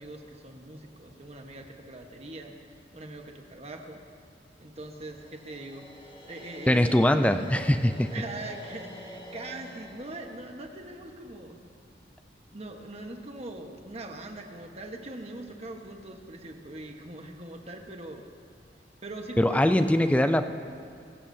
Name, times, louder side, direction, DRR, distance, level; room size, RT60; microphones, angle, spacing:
voice 1, 0.0-2.6 2.9-4.0 4.6-5.9 6.2-6.9 8.1-11.6 12.5-18.2 19.0-20.5, right 2 dB, 35° right, 3 dB, 1.2 m, -41 dB
sound 1, 4.8-11.9, equal, 30° left, 1.7 m, -47 dB
voice 2, 6.7-8.1 19.4-20.5, left 1 dB, 5° left, 9 dB, 0.4 m, -22 dB
24.5 x 15.0 x 2.8 m, 2.4 s
head